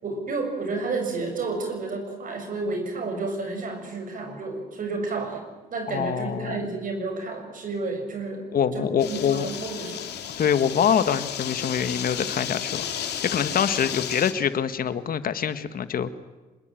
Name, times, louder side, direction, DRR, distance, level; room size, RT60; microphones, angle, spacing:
voice 1, 0.0-5.4 5.7-10.1, right 3 dB, 55° right, 5 dB, 7.4 m, -31 dB
voice 2, 5.9-6.6 8.5-9.5 10.4-16.1, left 8 dB, 60° left, 12 dB, 1.6 m, -25 dB
sound 1, 9.0-14.3, left 9 dB, 80° left, 2.9 m, -33 dB
25.5 x 21.5 x 9.2 m, 1.2 s
cardioid pair, 100°, 17 cm